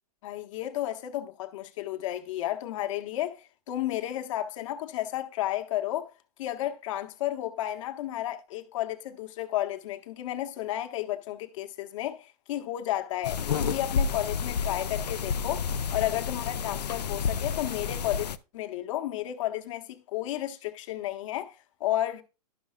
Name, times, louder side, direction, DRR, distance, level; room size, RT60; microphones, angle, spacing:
voice 1, 0.2-6.1 6.4-22.2, left 13 dB, 50° left, 0.9 m, -32 dB
sound 1, 13.2-18.4, left 6 dB, 85° left, 0.5 m, -30 dB
12.0 x 5.5 x 2.3 m
hypercardioid pair, 130°, 20 cm